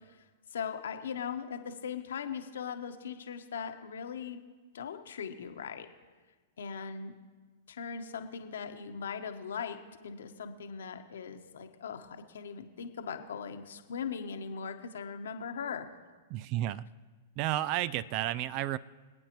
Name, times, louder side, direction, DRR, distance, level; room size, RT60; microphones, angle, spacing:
voice 1, 0.5-4.4 4.7-5.9 6.6-7.1 7.7-15.9, left 6 dB, 75° left, 6 dB, 1.2 m, -39 dB
voice 2, 16.3-16.9 17.4-18.8, right 14 dB, 45° right, 19 dB, 0.4 m, -32 dB
26.0 x 8.9 x 3.1 m, 1.4 s
hypercardioid pair, 110°, 0 cm